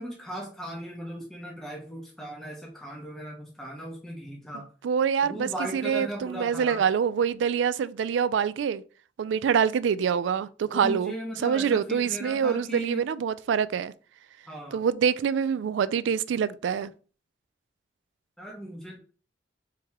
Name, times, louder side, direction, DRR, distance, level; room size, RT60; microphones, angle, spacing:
voice 1, 0.0-4.7 5.2-6.8 10.7-13.1 14.5-14.8 18.4-19.0, equal, 5° left, 1.1 m, -37 dB
voice 2, 4.8-8.8 9.2-11.1 11.4-13.9 14.7-16.9, right 7 dB, 85° right, 0.3 m, -25 dB
4.6 x 3.0 x 3.6 m
head